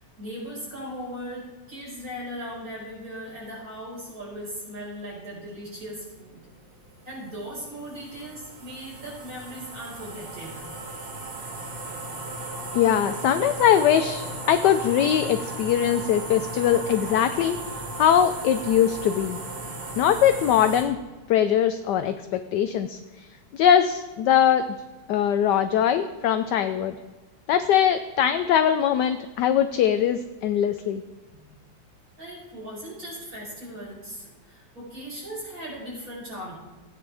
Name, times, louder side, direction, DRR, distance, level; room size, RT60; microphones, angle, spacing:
voice 1, 0.2-6.4 7.0-10.7 31.3-31.4 32.2-36.6, equal, 40° right, -4 dB, 5.4 m, -38 dB
sound 1, 6.4-20.8, right 2 dB, 85° right, 2.8 m, -36 dB
voice 2, 12.7-17.7 18.0-19.4 20.0-21.0 21.3-23.3 23.5-24.6 25.1-27.0 27.5-31.0, left 9 dB, 70° left, 9 dB, 1.0 m, -21 dB
16.5 x 9.7 x 3.4 m, 1.2 s
omnidirectional pair, 2.3 m